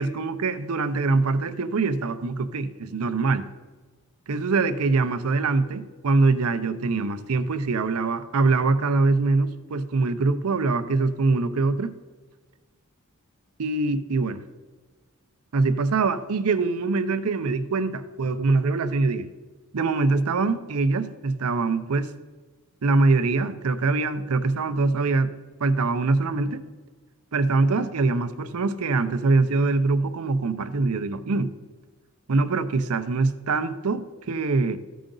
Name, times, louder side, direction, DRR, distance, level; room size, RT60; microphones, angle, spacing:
voice 1, 0.0-3.5 4.3-11.9 13.6-14.4 15.5-19.3 19.7-22.1 22.8-25.3 25.6-26.6 27.3-31.5 32.3-34.8, right 3 dB, 85° right, 11 dB, 0.6 m, -23 dB
14.0 x 5.1 x 3.8 m, 1.4 s
head